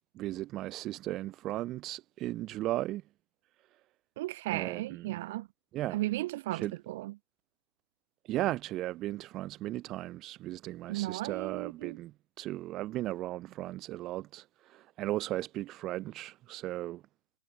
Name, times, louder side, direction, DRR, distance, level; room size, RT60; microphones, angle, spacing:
voice 1, 0.2-3.0 4.5-5.1 5.7-6.0 6.5-6.7 8.2-12.1 12.4-17.0, right 16 dB, 30° right, 0.4 m, -36 dB
voice 2, 4.2-5.5 5.9-7.2 10.9-12.0, right 17 dB, 50° right, 1.3 m, -35 dB
hypercardioid pair, 120°, 0 cm